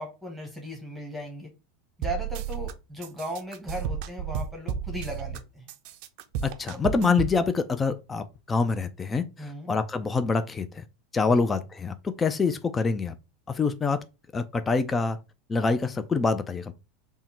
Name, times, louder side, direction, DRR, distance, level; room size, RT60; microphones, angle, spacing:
voice 1, 0.0-1.5 2.0-5.7 6.7-6.8 9.4-9.7 11.3-11.4, equal, ahead, 1.0 m, -37 dB
sound 1, 2.0-2.7 3.0-5.4 5.7-7.4, right 7 dB, 60° right, 0.4 m, -32 dB
voice 2, 6.4-9.2 9.7-10.8 11.1-13.1 13.5-14.0 14.3-15.2 15.5-16.7, left 4 dB, 20° left, 0.3 m, -25 dB
3.6 x 2.1 x 4.3 m
hypercardioid pair, 90°, 0 cm